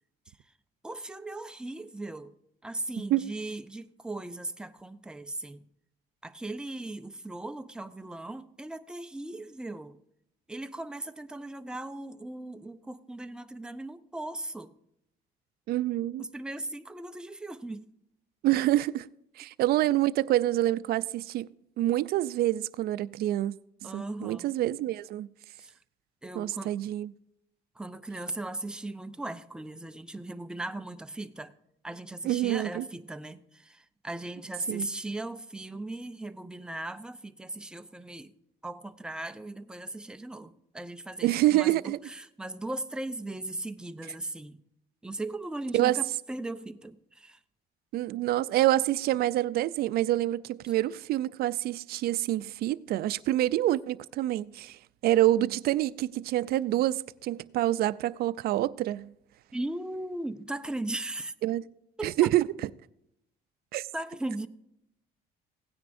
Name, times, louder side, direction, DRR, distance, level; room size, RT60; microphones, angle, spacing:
voice 1, 0.8-2.3 2.6-5.6 6.2-10.0 10.5-14.7 16.2-17.9 23.8-24.5 25.6-25.7 26.2-26.8 27.8-31.5 31.8-38.3 38.6-44.6 45.0-47.4 59.5-61.3 62.0-62.1 63.9-64.5, right 2 dB, 5° right, 0.5 m, -38 dB
voice 2, 15.7-16.2 18.4-19.1 19.4-23.6 23.8-25.3 26.4-27.1 32.2-32.9 34.7-34.9 41.2-42.0 45.7-46.0 47.9-59.1 61.4-61.6 62.0-62.5 63.7-63.9, right 14 dB, 65° right, 0.4 m, -27 dB
16.5 x 9.6 x 2.6 m
cardioid pair, 110°, 17 cm